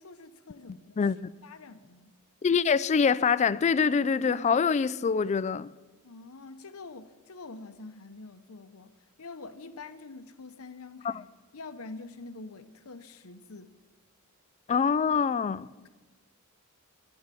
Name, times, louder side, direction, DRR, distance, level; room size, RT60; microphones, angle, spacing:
voice 1, 0.0-1.1 1.4-2.1 6.0-13.7 15.8-15.9, left 3 dB, 80° left, 0.9 m, -46 dB
voice 2, 1.0-1.3 2.4-5.7 11.0-11.1 14.7-15.7, left 6 dB, 30° left, 0.3 m, -25 dB
11.0 x 10.5 x 7.5 m
head